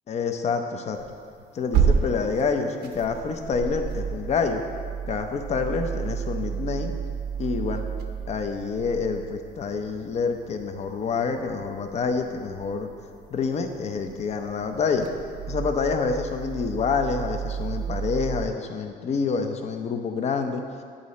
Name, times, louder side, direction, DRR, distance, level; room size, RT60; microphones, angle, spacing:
voice 1, 0.1-1.0 1.5-4.6 5.1-6.9 7.4-7.8 8.3-12.9 13.3-15.0 15.5-20.6, left 5 dB, 40° left, 6 dB, 0.6 m, -27 dB
sound 1, 0.9-18.5, right 7 dB, 75° right, 0.7 m, -32 dB
10.5 x 3.8 x 4.2 m, 2.2 s
cardioid pair, 110°, 17 cm